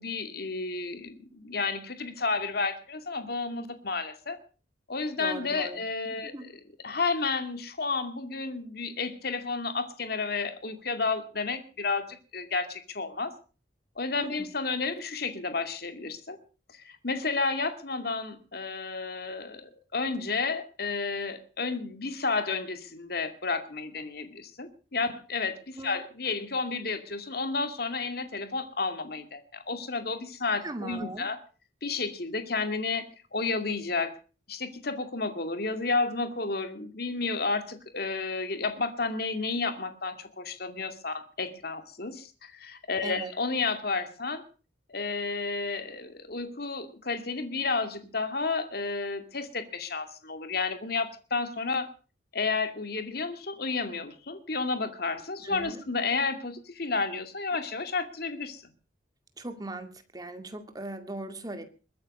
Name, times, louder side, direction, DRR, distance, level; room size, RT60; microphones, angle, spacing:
voice 1, 0.0-4.4 4.9-6.5 6.8-13.3 14.0-16.4 16.7-31.4 31.8-34.1 34.5-44.4 44.9-51.9 52.3-58.6, left 4 dB, 55° left, 8 dB, 2.3 m, -31 dB
voice 2, 5.2-5.8 6.2-6.5 14.2-14.3 25.8-26.0 30.6-31.3 43.0-43.3 55.4-55.8 59.4-61.7, right 1 dB, 20° right, 7 dB, 2.2 m, -39 dB
22.0 x 9.5 x 6.5 m, 0.38 s
head